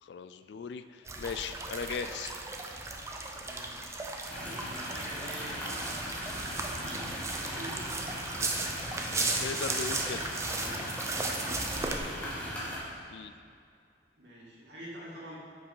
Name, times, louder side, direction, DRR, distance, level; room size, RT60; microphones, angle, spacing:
voice 1, 0.0-2.4 9.4-10.3 13.1-13.3, left 6 dB, 70° left, 11 dB, 0.3 m, -38 dB
sound 1, 1.1-12.0, right 3 dB, 15° right, 0.6 m, -36 dB
voice 2, 3.3-3.8 4.5-6.6 7.4-8.0 11.7-12.6 14.2-15.4, right 1 dB, 80° right, -7 dB, 2.3 m, -46 dB
sound 2, 4.3-12.8, equal, 10° left, 2.3 m, -39 dB
7.5 x 6.8 x 5.5 m, 2.3 s
head